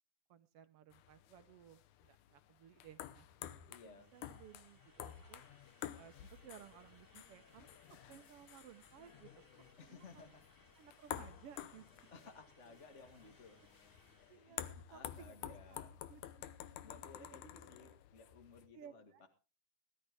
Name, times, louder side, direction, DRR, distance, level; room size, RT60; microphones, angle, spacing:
voice 1, 0.3-5.4 6.0-10.2 10.8-11.8 14.1-16.4 17.2-17.4 18.7-19.3, right 9 dB, 65° right, 10 dB, 1.6 m, -59 dB
sound 1, 0.9-18.7, left 11 dB, 90° left, 2.4 m, -51 dB
voice 2, 3.7-4.2 9.8-10.4 12.1-13.6 14.4-15.9 16.8-19.3, left 4 dB, 35° left, 5 dB, 1.3 m, -58 dB
sound 2, 3.7-14.6, left 1 dB, 10° left, 1.8 m, -68 dB
18.5 x 12.0 x 3.5 m, 0.34 s
omnidirectional pair, 3.4 m